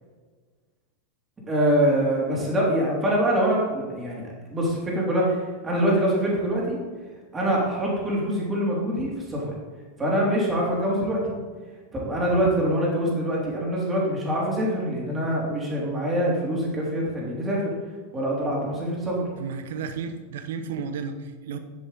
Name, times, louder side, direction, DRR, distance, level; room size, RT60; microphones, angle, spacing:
voice 1, 1.5-4.2 4.5-6.8 7.3-9.5 10.0-11.4 11.9-17.7 18.1-19.2, right 1 dB, 15° right, -3 dB, 3.4 m, -24 dB
voice 2, 19.4-21.6, right 5 dB, 55° right, 9 dB, 0.9 m, -33 dB
9.7 x 8.9 x 4.1 m, 1.5 s
figure-of-eight pair, 90°, 0 cm